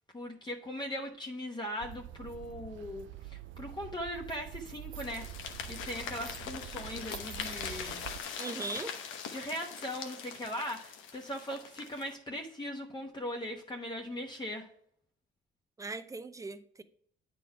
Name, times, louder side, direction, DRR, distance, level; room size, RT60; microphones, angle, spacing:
voice 1, 0.1-5.2 5.7-8.0 9.3-14.7, left 1 dB, 20° left, 1.0 m, -39 dB
sound 1, 1.8-8.2, right 14 dB, 75° right, 0.4 m, -46 dB
sound 2, 5.0-12.1, left 7 dB, 85° left, 0.9 m, -42 dB
voice 2, 8.4-9.0 15.8-16.8, right 3 dB, 15° right, 0.6 m, -39 dB
9.0 x 3.9 x 4.6 m
cardioid pair, 90°, 20 cm